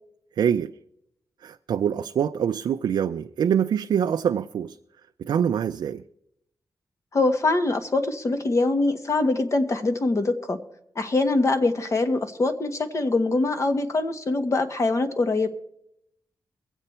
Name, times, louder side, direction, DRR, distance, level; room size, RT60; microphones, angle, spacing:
voice 1, 0.4-0.7 1.4-4.8 5.2-6.0, right 8 dB, 80° right, 8 dB, 0.4 m, -24 dB
voice 2, 7.1-10.6 10.9-15.5, left 2 dB, 45° left, 8 dB, 1.3 m, -23 dB
23.0 x 8.0 x 4.3 m, 0.77 s
cardioid pair, 85°, 7 cm